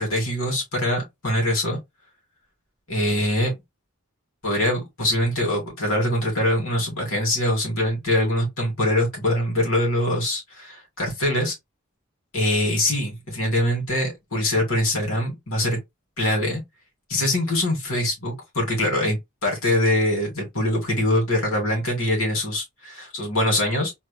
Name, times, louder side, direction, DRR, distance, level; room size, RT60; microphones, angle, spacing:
voice 1, 0.0-1.8 2.9-3.5 4.4-11.5 12.3-15.8 16.2-16.6 17.1-23.9, left 1 dB, 85° left, 2.6 m, -23 dB
3.9 x 3.5 x 2.3 m
head